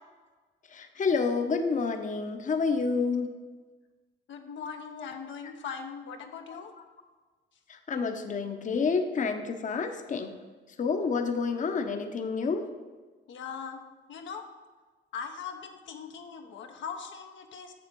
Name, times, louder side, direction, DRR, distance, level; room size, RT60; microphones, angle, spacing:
voice 1, 0.7-3.3 7.9-10.3 10.8-12.6, left 4 dB, 40° left, 6 dB, 0.8 m, -28 dB
voice 2, 4.3-6.7 13.3-13.8 14.1-14.5 15.1-17.7, left 6 dB, 70° left, 4 dB, 0.8 m, -40 dB
6.9 x 6.7 x 4.6 m, 1.4 s
cardioid pair, 90°, 20 cm